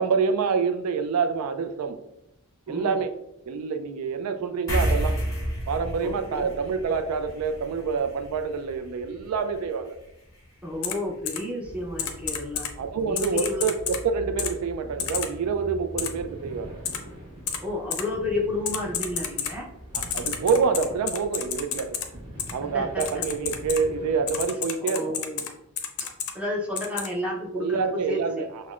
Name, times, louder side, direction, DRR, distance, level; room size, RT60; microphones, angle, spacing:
voice 1, 0.0-2.0 2.7-3.1 3.5-5.2 5.7-10.0 12.8-16.8 19.9-22.0 22.5-25.2 27.5-28.7, right 5 dB, 85° right, 9 dB, 0.3 m, -27 dB
voice 2, 2.7-3.0 6.0-6.5 10.6-12.7 13.0-13.7 17.6-19.7 22.7-23.1 24.8-25.5 26.0-26.1 26.3-27.8 28.1-28.5, left 1 dB, 5° right, -3 dB, 0.7 m, -31 dB
sound 1, 4.7-11.5, equal, 15° left, 1.1 m, -32 dB
Typing, 10.8-10.9 11.3-11.4 12.0-12.7 13.2-14.0 14.4-14.5 15.0-15.3 16.0-16.1 16.9-17.0 17.5-17.6 17.9-18.0 18.7-19.5 19.9-22.0 22.4-22.5 23.0-23.8 24.3-25.5 25.8-26.3 26.8-27.1, left 8 dB, 80° left, 0.5 m, -29 dB
sound 2, 11.6-24.5, equal, 25° right, 1.4 m, -43 dB
5.8 x 2.1 x 2.4 m, 0.84 s
head